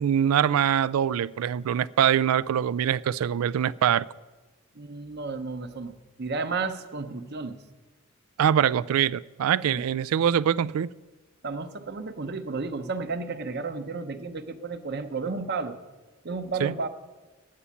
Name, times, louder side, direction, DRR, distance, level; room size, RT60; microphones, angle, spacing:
voice 1, 0.0-4.1 8.4-10.9 16.6-16.7, right 9 dB, 85° right, 0.3 m, -23 dB
voice 2, 4.7-7.6 9.7-9.8 11.4-15.8 16.2-16.9, right 4 dB, 50° right, 0.8 m, -32 dB
10.0 x 8.5 x 8.3 m
head